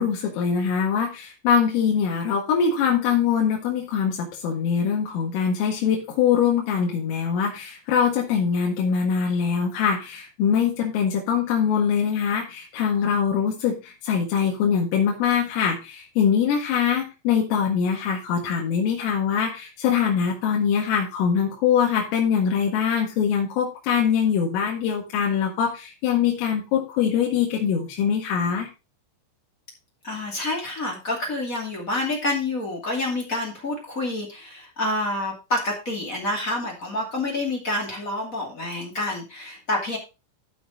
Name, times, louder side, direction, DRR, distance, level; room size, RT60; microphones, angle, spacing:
voice 1, 0.0-28.7, left 7 dB, 90° left, -2 dB, 4.4 m, -23 dB
voice 2, 30.0-40.0, left 2 dB, 30° left, -1 dB, 1.4 m, -28 dB
13.5 x 6.1 x 3.7 m, 0.28 s
omnidirectional pair, 5.7 m